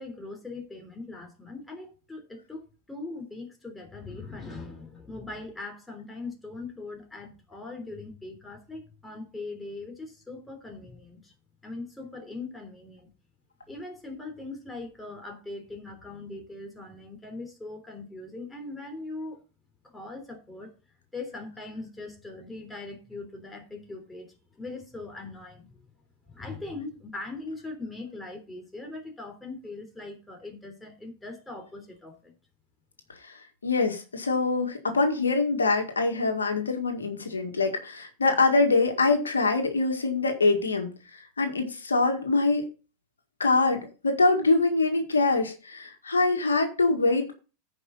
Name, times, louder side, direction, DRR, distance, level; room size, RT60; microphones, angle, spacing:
voice 1, 0.0-11.3 11.6-13.1 13.7-19.4 19.8-20.7 21.1-25.9 26.2-32.3, left 3 dB, 10° left, 3.4 m, -40 dB
voice 2, 33.6-42.6 43.4-47.3, left 3 dB, 85° left, 1.9 m, -24 dB
15.0 x 5.4 x 4.0 m
hypercardioid pair, 95°, 0 cm